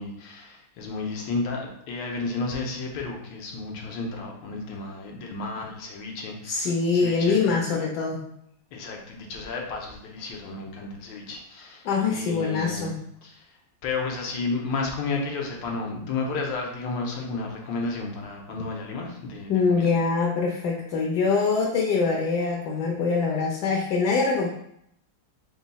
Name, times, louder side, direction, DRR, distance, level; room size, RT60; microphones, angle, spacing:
voice 1, 0.0-7.4 7.7-7.8 8.7-13.0 13.2-13.4 13.8-19.9, left 3 dB, 90° left, 0 dB, 1.5 m, -32 dB
voice 2, 6.4-8.2 11.8-12.9 19.5-24.5, left 4 dB, 70° left, 0 dB, 1.1 m, -24 dB
3.9 x 2.2 x 4.0 m, 0.74 s
omnidirectional pair, 2.0 m